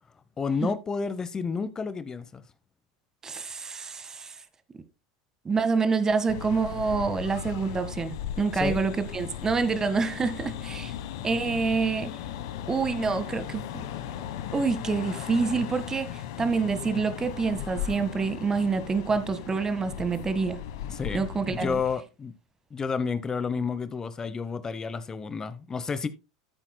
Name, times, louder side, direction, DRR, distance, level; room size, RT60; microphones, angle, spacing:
voice 1, 0.4-2.4 8.5-8.8 20.9-22.3 22.7-26.1, left 5 dB, 25° left, 0.9 m, -31 dB
voice 2, 3.2-4.3 5.4-10.9 11.2-12.1 12.7-13.6 14.5-20.6 21.1-21.8, right 4 dB, 20° right, 1.6 m, -27 dB
sound 1, 6.3-21.9, left 10 dB, 65° left, 1.3 m, -37 dB
13.0 x 8.9 x 2.2 m
hypercardioid pair, 85°, 3 cm